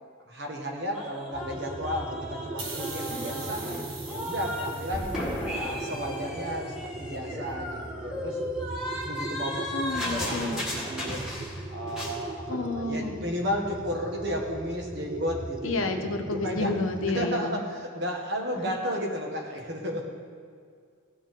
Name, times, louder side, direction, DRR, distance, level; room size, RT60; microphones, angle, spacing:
voice 1, 0.3-3.6 4.0-5.1 5.5-8.4 9.1-11.3 11.7-15.9 16.4-16.7 17.1-20.1, equal, 55° right, 0 dB, 1.6 m, -33 dB
sound 1, 0.9-4.7 4.9-11.6 11.9-12.2, left 1 dB, 5° right, 2.0 m, -35 dB
sound 2, 1.3-17.3, right 2 dB, 25° right, 0.3 m, -39 dB
sound 3, 2.6-6.0, right 3 dB, 85° right, 1.5 m, -42 dB
voice 2, 9.7-10.6 12.5-13.2 15.6-17.6, left 3 dB, 80° left, 5 dB, 1.0 m, -30 dB
16.0 x 8.4 x 3.7 m, 2.1 s
head